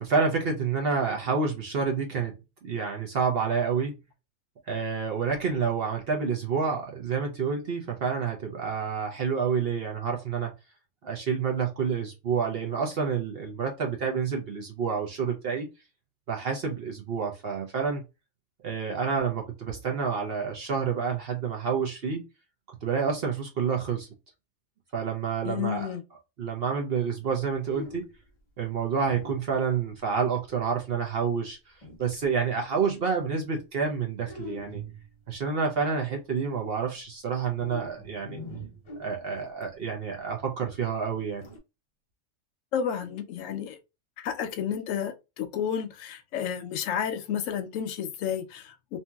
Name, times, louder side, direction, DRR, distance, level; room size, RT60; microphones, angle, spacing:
voice 1, 0.0-2.4 2.6-4.0 4.7-10.5 11.0-15.7 16.3-18.0 18.6-22.3 22.8-24.1 24.9-25.9 26.4-28.1 28.6-31.6 32.0-34.8 35.3-38.4 39.0-41.5, right 6 dB, 55° right, 0.7 m, -28 dB
voice 2, 25.4-26.0 42.7-43.8 44.2-49.0, left 8 dB, 75° left, 0.9 m, -31 dB
sound 1, 27.3-27.4 27.6-28.3 29.0-29.9 31.8-32.3 34.2-35.3 37.5-39.6 41.1-41.6, equal, 45° left, 0.4 m, -43 dB
2.8 x 2.6 x 2.2 m
omnidirectional pair, 1.4 m